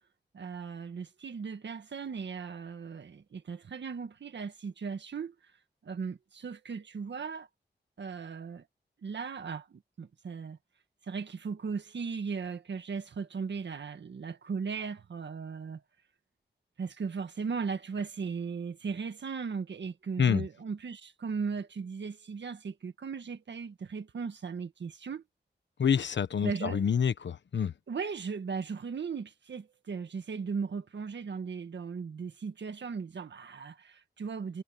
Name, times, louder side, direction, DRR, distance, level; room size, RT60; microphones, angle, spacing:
voice 1, 0.3-5.3 5.8-7.5 8.0-8.7 9.0-10.6 11.0-15.8 16.8-25.2 26.4-26.9 27.9-34.6, right 5 dB, 80° right, 1.7 m, -37 dB
voice 2, 25.8-27.7, left 7 dB, 85° left, 1.1 m, -27 dB
cardioid pair, 55°, 18 cm